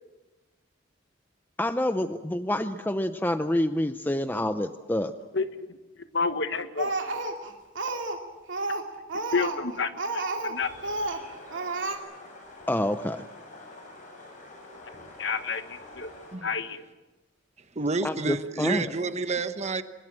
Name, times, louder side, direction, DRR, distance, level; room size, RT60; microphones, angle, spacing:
voice 1, 1.6-5.1 12.7-13.2 18.0-18.9, left 1 dB, 10° left, 0.7 m, -27 dB
voice 2, 5.3-5.8 6.1-6.9 9.3-10.7 15.2-16.1 16.4-16.8, left 4 dB, 70° left, 1.5 m, -30 dB
Speech, 6.8-8.2 8.5-10.6 10.8-11.2 11.5-12.0, right 2 dB, 80° right, 2.6 m, -31 dB
sound 1, 10.5-16.4, left 2 dB, 40° left, 7.8 m, -47 dB
voice 3, 17.7-19.8, right 3 dB, 35° right, 1.1 m, -29 dB
24.0 x 21.0 x 7.6 m
head